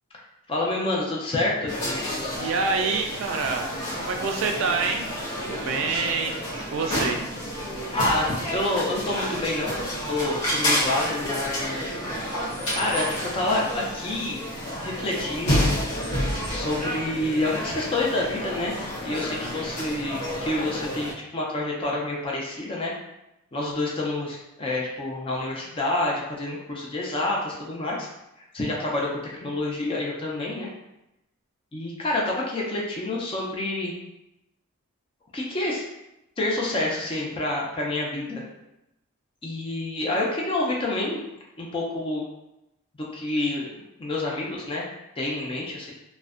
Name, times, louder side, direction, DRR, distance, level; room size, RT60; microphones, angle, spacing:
voice 1, 0.5-1.7 7.9-9.7 10.1-12.0 12.7-14.4 14.8-15.6 16.5-18.7 19.0-22.9 23.5-28.1 28.5-29.1 29.4-30.7 31.7-33.9 35.3-35.8 36.4-38.4 39.4-41.2 41.6-42.2 43.1-44.8 45.2-45.9, left 2 dB, 25° left, -3 dB, 0.4 m, -28 dB
sound 1, 1.7-21.1, equal, 80° left, 0.7 m, -30 dB
voice 2, 2.4-3.7 4.0-7.3, right 4 dB, 60° right, 3 dB, 0.3 m, -27 dB
2.5 x 2.1 x 2.4 m, 0.90 s
head